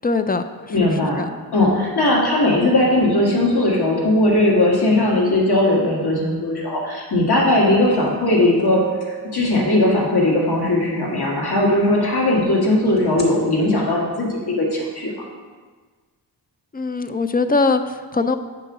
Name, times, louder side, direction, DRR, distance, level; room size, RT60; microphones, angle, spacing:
voice 1, 0.0-0.9 1.2-1.4 1.7-1.9 16.7-18.4, left 3 dB, 25° left, 9 dB, 0.3 m, -22 dB
voice 2, 0.7-1.2 1.5-8.8 9.3-15.2, left 1 dB, 65° left, -3 dB, 1.8 m, -18 dB
sound 1, 8.1-8.2 8.6-10.3 13.0-13.2, right 8 dB, 40° left, 1.6 m, -32 dB
7.9 x 3.7 x 6.0 m, 1.4 s
cardioid pair, 85°, 41 cm